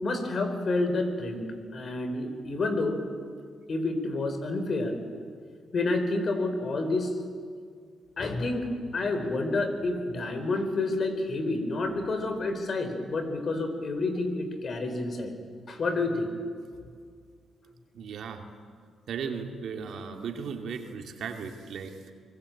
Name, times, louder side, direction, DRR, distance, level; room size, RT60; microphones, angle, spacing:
voice 1, 0.0-1.4 1.7-3.0 3.7-5.0 5.7-7.2 8.2-15.3 15.7-16.3, left 2 dB, 55° left, 7 dB, 4.4 m, -29 dB
voice 2, 17.9-18.5 19.1-22.1, right 6 dB, 70° right, 4 dB, 2.7 m, -36 dB
24.5 x 21.0 x 8.7 m, 2.1 s
supercardioid pair, 55°, 0 cm